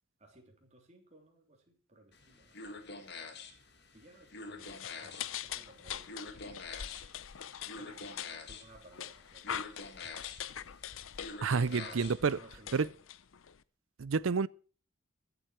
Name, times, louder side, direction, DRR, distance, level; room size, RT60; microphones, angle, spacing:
voice 1, 0.2-3.2 3.9-6.7 7.7-10.3 11.7-13.0, right 2 dB, 35° right, 3.4 m, -58 dB
sound 1, 2.1-12.4, left 3 dB, 55° left, 2.0 m, -48 dB
sound 2, 4.6-13.6, left 9 dB, 80° left, 0.6 m, -43 dB
voice 2, 11.4-12.4 12.7-12.9 14.0-14.5, right 5 dB, 75° right, 0.5 m, -29 dB
22.0 x 8.0 x 4.4 m
head